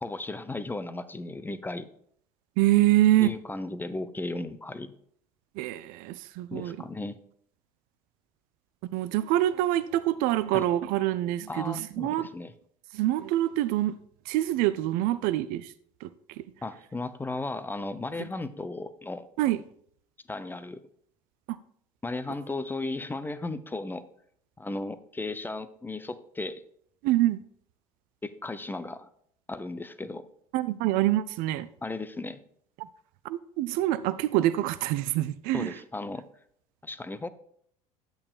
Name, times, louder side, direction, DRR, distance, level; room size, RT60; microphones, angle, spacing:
voice 1, 0.0-1.9 3.2-4.9 6.5-7.2 10.5-10.7 11.5-12.5 16.6-19.3 20.3-20.8 22.0-24.0 24.6-26.6 28.2-29.1 29.5-30.3 31.8-32.4 35.5-36.2 36.8-37.3, left 2 dB, 10° left, 0.5 m, -35 dB
voice 2, 2.6-3.3 5.6-6.8 8.8-12.3 12.9-13.9 14.3-15.7 16.0-16.1 19.4-19.6 27.0-27.4 30.5-31.7 33.2-35.7, right 14 dB, 50° right, 0.4 m, -25 dB
10.5 x 8.5 x 2.4 m
figure-of-eight pair, 65°, 19 cm